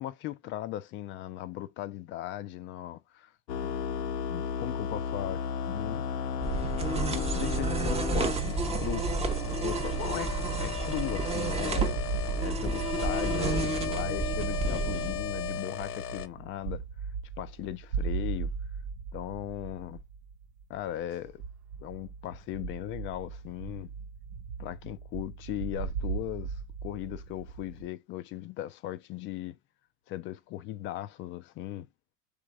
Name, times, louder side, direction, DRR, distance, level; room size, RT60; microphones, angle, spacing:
voice 1, 0.0-3.3 3.6-3.7 4.3-6.1 7.1-9.1 9.5-12.0 12.4-16.8 17.4-18.5 19.1-20.0 20.7-21.4 21.8-23.9 24.6-29.6 30.1-31.9, left 14 dB, 25° left, 0.3 m, -38 dB
sound 1, 3.5-16.3, left 6 dB, 70° left, 0.8 m, -35 dB
sound 2, 6.4-15.6, right 3 dB, 15° right, 0.6 m, -31 dB
sound 3, 10.3-27.9, right 6 dB, 70° right, 0.9 m, -38 dB
4.9 x 3.3 x 3.0 m
hypercardioid pair, 80°, 49 cm